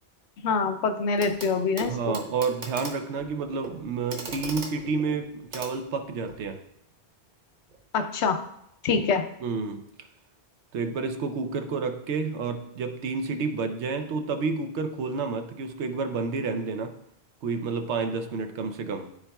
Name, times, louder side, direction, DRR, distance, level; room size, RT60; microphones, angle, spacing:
voice 1, 0.4-2.2 7.9-8.4 8.8-9.3, left 5 dB, 85° left, 8 dB, 0.9 m, -25 dB
Clock, 1.2-1.5 1.8-6.5 7.7-7.8, right 2 dB, 45° right, 1.0 m, -40 dB
voice 2, 1.9-6.6 9.4-9.9 10.7-16.9 17.4-19.1, right 4 dB, 85° right, 7 dB, 1.0 m, -30 dB
12.5 x 4.1 x 2.3 m, 0.77 s
omnidirectional pair, 1.1 m